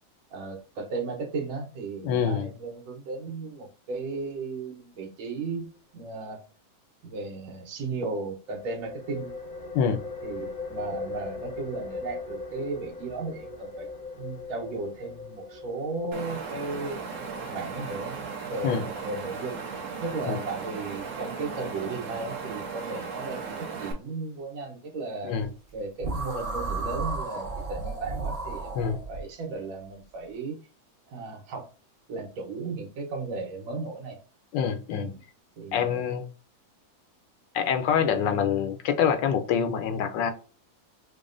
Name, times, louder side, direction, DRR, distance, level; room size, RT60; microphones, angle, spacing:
voice 1, 0.3-5.7 5.9-6.4 7.0-9.3 10.2-13.9 14.2-17.0 17.5-18.2 18.5-19.6 20.0-25.3 25.7-28.7 29.1-30.6 31.1-31.7 32.1-34.2 34.9-35.2 35.6-36.0, right 3 dB, 80° right, 1.7 m, -35 dB
voice 2, 2.0-2.5 9.7-10.0 18.6-18.9 20.2-20.4 25.2-25.5 28.7-29.0 34.5-35.1 35.7-36.3 37.5-40.3, left 7 dB, 75° left, 1.2 m, -25 dB
sound 1, 8.5-19.8, left 3 dB, 40° left, 0.7 m, -40 dB
Wind, 16.1-23.9, right 5 dB, 55° right, 1.2 m, -36 dB
sound 2, 26.0-29.2, right 3 dB, 30° right, 0.8 m, -33 dB
6.1 x 2.1 x 2.5 m
omnidirectional pair, 2.1 m